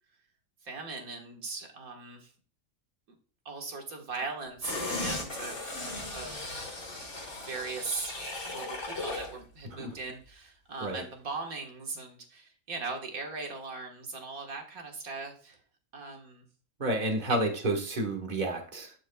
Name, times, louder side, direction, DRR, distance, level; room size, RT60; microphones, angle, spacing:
voice 1, 0.6-2.3 3.1-3.2 3.5-6.7 7.3-8.1 8.5-15.6 15.9-16.5, right 4 dB, 75° right, 2 dB, 2.0 m, -39 dB
sound 1, 4.6-9.4 9.7-9.8, left 2 dB, 50° left, 2.9 m, -37 dB
voice 2, 16.8-18.9, right 1 dB, 35° right, 3 dB, 1.5 m, -30 dB
12.0 x 6.3 x 2.3 m, 0.41 s
omnidirectional pair, 1.5 m